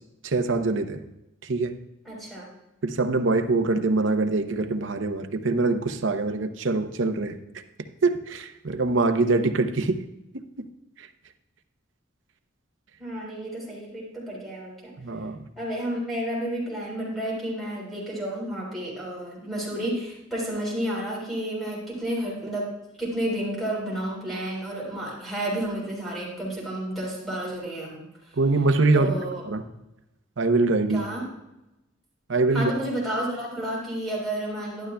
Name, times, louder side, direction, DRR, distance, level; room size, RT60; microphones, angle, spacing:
voice 1, 0.2-1.0 1.4-1.7 2.8-7.4 8.0-10.0 10.6-10.7 15.0-15.4 28.4-29.1 29.5-29.6 30.4-31.0 32.3-32.7, right 3 dB, 65° right, 8 dB, 0.7 m, -23 dB
voice 2, 2.0-2.5 13.0-14.9 15.6-28.1 28.9-29.3 30.9-31.3 32.5-34.9, right 1 dB, ahead, -5 dB, 3.9 m, -31 dB
12.0 x 11.5 x 2.2 m, 0.93 s
head